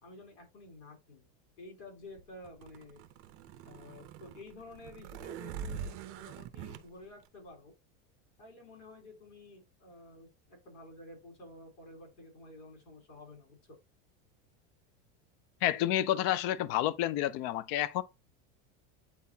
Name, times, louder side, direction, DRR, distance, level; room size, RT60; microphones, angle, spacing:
voice 1, 0.0-1.3 1.6-3.0 3.6-7.7 8.4-13.8, left 2 dB, 75° left, 4.0 m, -51 dB
sound 1, 2.2-6.8, right 8 dB, 40° right, 0.6 m, -44 dB
voice 2, 15.6-18.0, left 13 dB, 45° left, 0.5 m, -29 dB
8.5 x 4.0 x 2.8 m
supercardioid pair, 165°, 36 cm